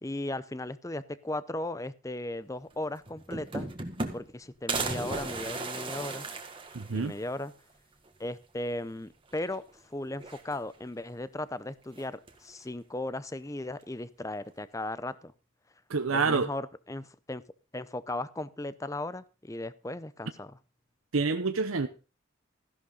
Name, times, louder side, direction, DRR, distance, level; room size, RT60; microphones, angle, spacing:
voice 1, 0.0-3.7 4.1-6.3 6.9-7.5 8.2-15.3 16.1-17.4 17.7-20.6, left 1 dB, 15° left, 16 dB, 0.6 m, -36 dB
sound 1, 2.7-2.8 3.1-4.4 4.7-7.3 7.7-7.8 8.1-8.2 9.3-9.8 10.1-10.9 11.9-12.5, right 3 dB, 25° right, 1.6 m, -36 dB
voice 2, 6.7-7.1 15.9-16.5 21.1-21.9, right 4 dB, 80° right, 8 dB, 0.8 m, -27 dB
14.5 x 11.0 x 3.9 m, 0.33 s
head